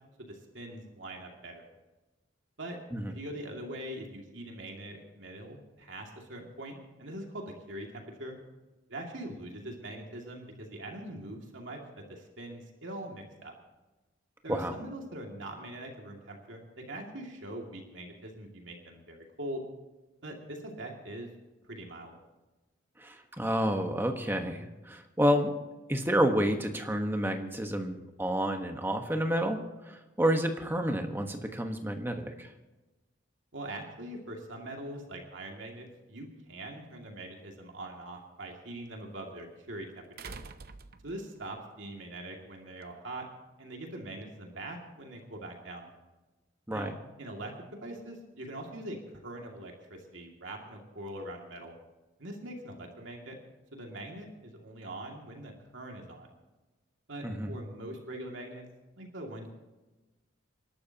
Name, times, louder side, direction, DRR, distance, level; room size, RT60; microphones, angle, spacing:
voice 1, 0.2-1.7 2.6-2.8 3.1-8.4 8.9-11.8 12.1-13.5 14.4-19.6 20.2-21.3 21.6-22.2 33.5-40.4 41.0-43.2 43.6-45.9 46.7-46.9 47.2-47.5 47.8-49.0 49.2-51.8 52.2-53.4 53.7-56.3 57.1-58.7 59.0-59.5, right 1 dB, 70° right, 1 dB, 2.3 m, -42 dB
voice 2, 23.0-25.5 25.9-29.6 29.8-32.5 46.7-46.9 57.2-57.5, equal, 10° right, 4 dB, 1.2 m, -29 dB
sound 1, 36.9-37.0 40.2-41.5 42.8-42.9, right 4 dB, 50° right, 0.7 m, -46 dB
27.5 x 12.0 x 2.9 m, 1.1 s
head